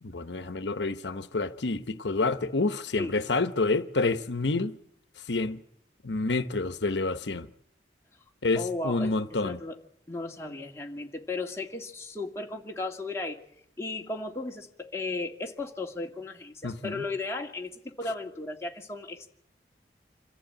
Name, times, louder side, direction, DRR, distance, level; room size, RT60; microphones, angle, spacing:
voice 1, 0.0-4.8 5.3-5.6 6.0-7.5 8.4-9.6 16.6-17.0, left 3 dB, 85° left, 1.0 m, -28 dB
voice 2, 8.6-9.1 9.4-9.8 10.1-13.4 13.8-19.3, left 3 dB, 15° left, 2.2 m, -35 dB
26.5 x 15.0 x 8.7 m
head